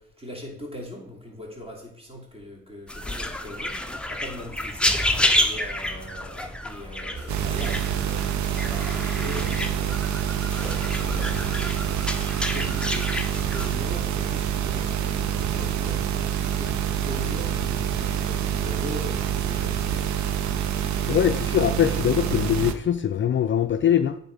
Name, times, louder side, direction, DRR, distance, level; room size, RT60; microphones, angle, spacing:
voice 1, 0.0-3.8 4.1-5.0 5.4-10.0 10.9-20.1, left 1 dB, 20° right, 3.1 m, -40 dB
sound 1, 2.9-13.8, left 1 dB, 5° left, 0.8 m, -29 dB
sound 2, 7.2-20.4, right 10 dB, 35° right, 0.4 m, -41 dB
sound 3, 7.3-22.7, right 9 dB, 65° right, 0.8 m, -27 dB
voice 2, 21.1-24.2, left 10 dB, 40° left, 0.5 m, -22 dB
8.9 x 4.3 x 5.3 m
cardioid pair, 90°, 30 cm